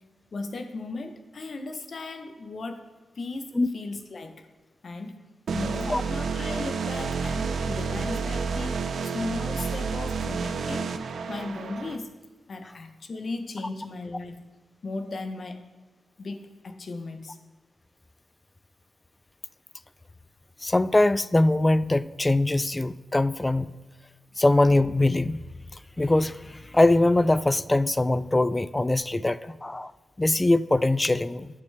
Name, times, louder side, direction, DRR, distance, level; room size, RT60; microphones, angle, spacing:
voice 1, 0.3-2.9 3.1-4.5 4.8-5.2 5.5-10.9 11.3-12.1 12.5-14.5 14.8-15.6 16.2-17.4, left 3 dB, 50° left, 7 dB, 0.9 m, -36 dB
sound 1, 5.5-12.0, right 5 dB, 70° right, 0.6 m, -30 dB
voice 2, 20.6-23.8 24.4-25.4 26.0-29.9 30.2-31.5, left 2 dB, 15° left, 16 dB, 0.3 m, -22 dB
15.5 x 6.8 x 3.4 m, 1.3 s
wide cardioid pair, 105°, 0 cm